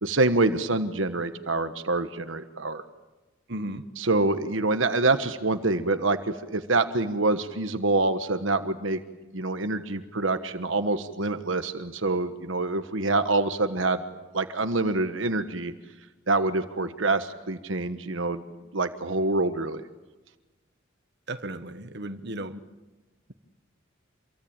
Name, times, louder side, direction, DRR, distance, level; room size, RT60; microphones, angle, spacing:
voice 1, 0.0-2.8 4.0-9.0 9.3-14.0 14.3-15.7 16.3-18.4 18.7-19.8, right 2 dB, 75° right, 1.3 m, -26 dB
voice 2, 3.5-3.8 21.3-22.6, right 1 dB, 55° right, 1.4 m, -35 dB
27.5 x 23.5 x 8.9 m
head